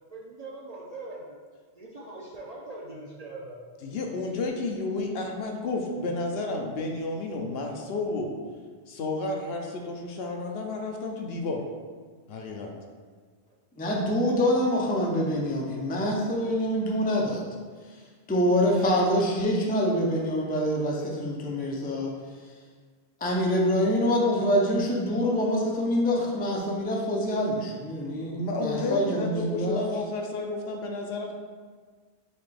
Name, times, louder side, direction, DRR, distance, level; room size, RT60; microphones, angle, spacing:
voice 1, 0.1-1.4 1.8-3.6, right 2 dB, 50° right, -4 dB, 0.5 m, -41 dB
voice 2, 3.8-8.3 8.9-11.6 12.3-12.7 28.4-31.3, left 3 dB, 70° left, 2 dB, 0.8 m, -31 dB
voice 3, 13.8-17.4 18.3-22.1 23.2-29.8, equal, 15° left, -2 dB, 0.3 m, -25 dB
4.2 x 3.3 x 3.3 m, 1.6 s
omnidirectional pair, 1.1 m